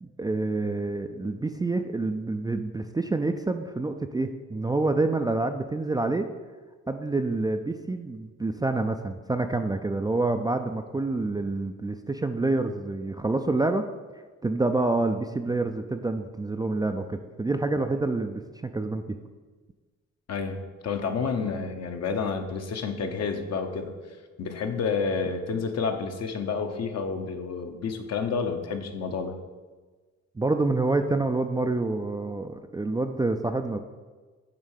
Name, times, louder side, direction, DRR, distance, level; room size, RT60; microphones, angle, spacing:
voice 1, 0.0-6.3 6.9-13.9 14.4-19.0 30.4-33.8, right 2 dB, 15° right, 6 dB, 0.4 m, -27 dB
voice 2, 20.3-23.9 24.4-29.4, left 5 dB, 55° left, 5 dB, 1.0 m, -30 dB
8.9 x 3.2 x 6.5 m, 1.3 s
cardioid pair, 90°, 30 cm